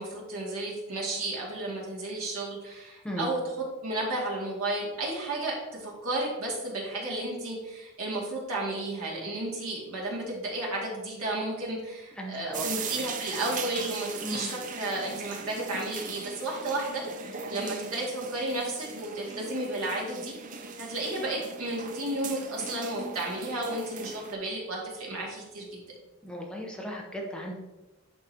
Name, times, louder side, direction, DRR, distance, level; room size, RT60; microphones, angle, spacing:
voice 1, 0.0-3.4 3.8-25.8, right 2 dB, 80° right, -3 dB, 2.1 m, -33 dB
voice 2, 12.1-12.9 14.2-14.5 26.2-27.5, equal, 5° left, -1 dB, 0.7 m, -36 dB
sound 1, 12.5-24.3, right 5 dB, 35° right, 0.5 m, -39 dB
10.5 x 3.9 x 2.8 m, 1.1 s
head